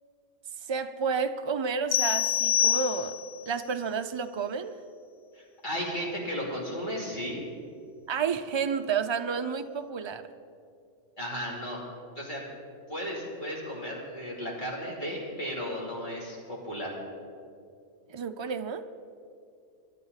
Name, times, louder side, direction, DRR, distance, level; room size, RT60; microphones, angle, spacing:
voice 1, 0.7-3.2 3.5-4.8 8.1-10.2 18.1-18.9, right 6 dB, 40° right, 8 dB, 0.4 m, -30 dB
sound 1, 1.9-3.4, left 10 dB, 70° left, 0.9 m, -26 dB
voice 2, 5.3-7.4 11.2-11.8 12.2-12.4 12.9-16.9, equal, 40° left, -4 dB, 3.4 m, -35 dB
24.5 x 11.5 x 4.1 m, 2.5 s
omnidirectional pair, 1.3 m